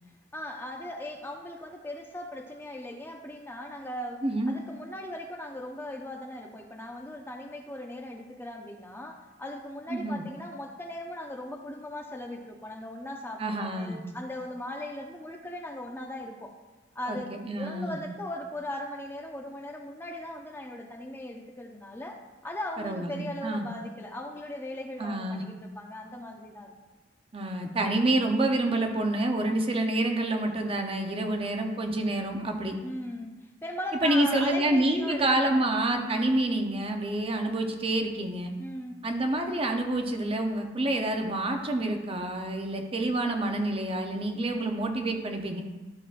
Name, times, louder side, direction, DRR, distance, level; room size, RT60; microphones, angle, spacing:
voice 1, 0.3-16.5 16.9-22.2 22.4-26.7 32.8-33.3 33.6-36.4 38.6-39.0, left 1 dB, 10° left, 2 dB, 0.6 m, -38 dB
voice 2, 4.2-4.5 9.9-10.2 13.4-14.0 17.1-17.2 17.4-18.0 22.8-23.7 25.0-25.4 27.3-32.8 34.0-38.5 39.0-45.6, right 1 dB, 30° right, 4 dB, 0.7 m, -28 dB
12.5 x 6.1 x 2.5 m, 1.2 s
head